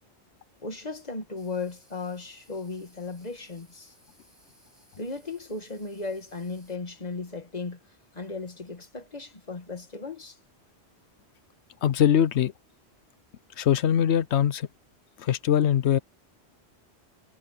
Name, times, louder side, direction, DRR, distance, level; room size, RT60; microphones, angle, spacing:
voice 1, 0.6-3.9 5.0-7.8 8.1-10.4, left 3 dB, 40° left, 2.1 m, -36 dB
sound 1, 1.4-6.8, equal, 25° right, 6.8 m, -62 dB
voice 2, 11.8-12.5 13.6-14.7 15.2-16.0, left 9 dB, 90° left, 1.0 m, -22 dB
omnidirectional pair, 1.1 m